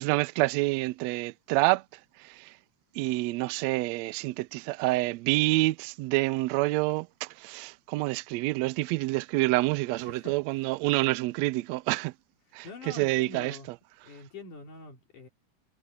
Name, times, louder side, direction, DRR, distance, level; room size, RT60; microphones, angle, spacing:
voice 1, 0.0-1.8 2.2-2.5 3.0-12.1 12.5-13.6, right 20 dB, 85° right, 1.5 m, -27 dB
voice 2, 9.9-10.8 12.5-13.7 14.0-15.3, left 3 dB, 80° left, 5.2 m, -46 dB
omnidirectional pair, 3.5 m